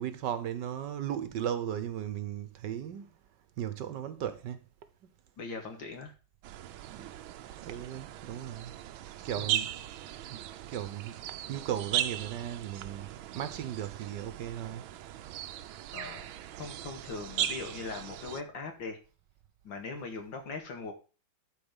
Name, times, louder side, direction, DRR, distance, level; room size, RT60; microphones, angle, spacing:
voice 1, 0.0-3.1 3.6-4.6 6.9-7.1 7.6-8.7 9.2-9.7 10.3-11.2 11.5-14.9, right 10 dB, 65° right, 1.4 m, -36 dB
voice 2, 5.4-6.1 9.4-9.6 15.9-16.3 16.6-19.0 19.6-20.9, left 4 dB, 70° left, 2.6 m, -40 dB
sound 1, 6.4-18.4, right 12 dB, 90° right, 1.5 m, -38 dB
12.0 x 4.8 x 5.3 m
omnidirectional pair, 2.2 m